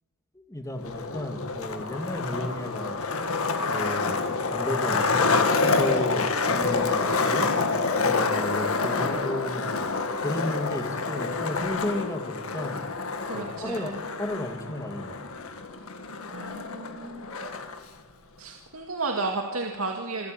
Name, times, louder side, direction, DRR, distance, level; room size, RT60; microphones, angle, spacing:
voice 1, 0.3-3.0 3.7-7.5 8.0-9.8 10.2-12.8 13.3-13.9 14.2-15.2, left 1 dB, 15° left, 5 dB, 2.2 m, -33 dB
Skateboard, 0.8-17.8, left 4 dB, 70° left, 1.9 m, -27 dB
voice 2, 13.2-14.0 16.3-17.3 18.4-20.3, right 3 dB, 70° right, 2 dB, 2.3 m, -33 dB
27.5 x 15.0 x 9.0 m, 1.3 s
head